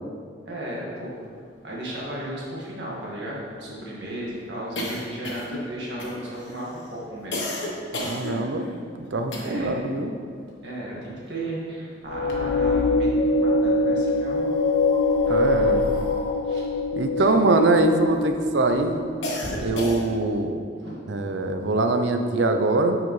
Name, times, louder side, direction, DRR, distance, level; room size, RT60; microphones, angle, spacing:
voice 1, 0.5-1.2 1.6-7.5 9.4-9.8 10.6-14.5 15.2-15.8 16.4-16.7 17.3-17.6 20.8-21.0, right 1 dB, 65° right, -5 dB, 1.7 m, -35 dB
sound 1, 1.6-1.7 2.0-2.1 2.4-9.8 10.1-11.7 12.0-13.0 13.7-18.2 18.6-20.4, left 1 dB, 85° left, 1.1 m, -35 dB
voice 2, 8.0-8.7 9.1-10.1 15.3-15.8 16.9-19.0 19.6-20.6 21.1-23.0, right 2 dB, 80° right, 6 dB, 0.6 m, -23 dB
sound 2, 12.1-19.4, left 2 dB, 70° left, 0.4 m, -23 dB
9.2 x 4.9 x 3.2 m, 2.1 s
head